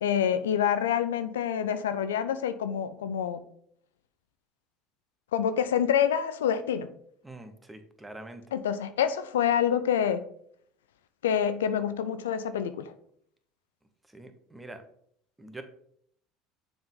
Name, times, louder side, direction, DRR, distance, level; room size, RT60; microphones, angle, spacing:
voice 1, 0.0-3.4 5.3-6.9 8.5-10.2 11.2-12.9, left 8 dB, 90° left, 11 dB, 0.4 m, -27 dB
voice 2, 7.2-8.4 14.1-14.8 15.4-15.6, right 2 dB, 10° right, 7 dB, 1.0 m, -44 dB
6.9 x 3.7 x 3.9 m, 0.66 s
hypercardioid pair, 80°, 0 cm